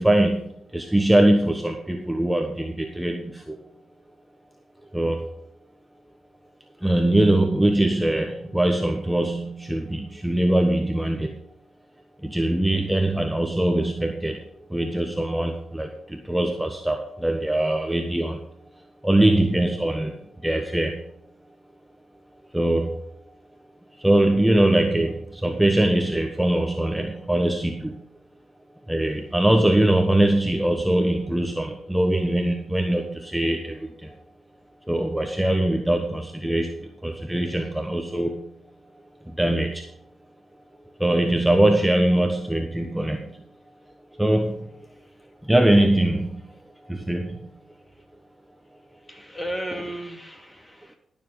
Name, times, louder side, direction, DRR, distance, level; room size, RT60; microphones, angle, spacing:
voice 1, 0.0-3.6 4.9-5.2 6.8-11.4 12.2-14.4 14.7-18.4 19.0-20.2 20.4-21.0 22.5-23.0 24.0-28.0 28.9-34.1 34.9-38.5 39.3-39.9 41.0-43.4 44.1-44.7 45.4-46.4 46.9-47.4, right 1 dB, 5° right, 4 dB, 1.1 m, -22 dB
voice 2, 49.1-51.0, equal, 15° left, 3 dB, 2.6 m, -34 dB
12.0 x 7.1 x 5.5 m, 0.71 s
cardioid pair, 60°, 0 cm